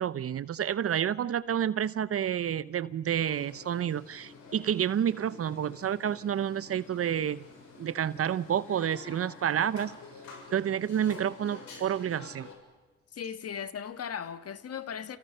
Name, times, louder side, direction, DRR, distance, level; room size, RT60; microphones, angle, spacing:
voice 1, 0.0-7.5 7.8-10.0 10.5-12.5, right 9 dB, 50° right, 0.7 m, -29 dB
sound 1, 3.3-12.5, left 4 dB, 75° left, 7.3 m, -49 dB
voice 2, 13.1-15.2, left 8 dB, 55° left, 1.5 m, -37 dB
29.5 x 29.0 x 5.6 m
cardioid pair, 90°, 30 cm